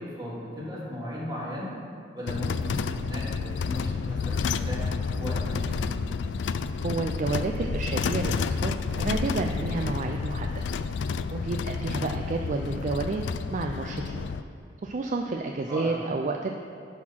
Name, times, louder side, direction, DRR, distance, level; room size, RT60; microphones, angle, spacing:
voice 1, 0.0-1.8 2.1-4.9 5.2-5.9 15.7-15.9, equal, 25° right, -6 dB, 2.1 m, -36 dB
sound 1, 2.3-14.4, left 5 dB, 85° left, 0.3 m, -30 dB
voice 2, 6.8-10.6 11.3-13.2 13.5-14.3 14.8-16.5, right 3 dB, 45° right, 3 dB, 0.4 m, -30 dB
10.5 x 4.3 x 5.7 m, 2.7 s
head